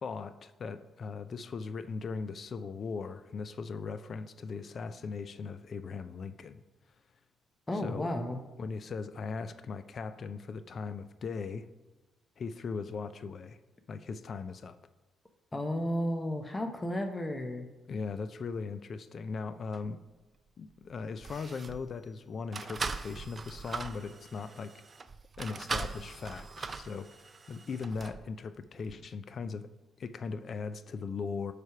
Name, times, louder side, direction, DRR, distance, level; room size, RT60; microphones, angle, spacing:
voice 1, 0.0-6.6 7.7-8.2 8.6-11.7 12.4-13.6 13.9-14.8 17.9-20.0 20.6-24.7 25.4-29.7 30.0-31.5, left 5 dB, 50° left, 13 dB, 0.4 m, -39 dB
voice 2, 7.7-8.4 15.5-17.7, left 1 dB, 20° left, 6 dB, 0.7 m, -33 dB
sound 1, 19.7-19.9 20.7-20.8 21.2-21.9 22.5-28.2 28.9-29.0, right 4 dB, 35° right, 0.4 m, -40 dB
9.1 x 3.3 x 5.7 m, 1.1 s
cardioid pair, 90°, 0 cm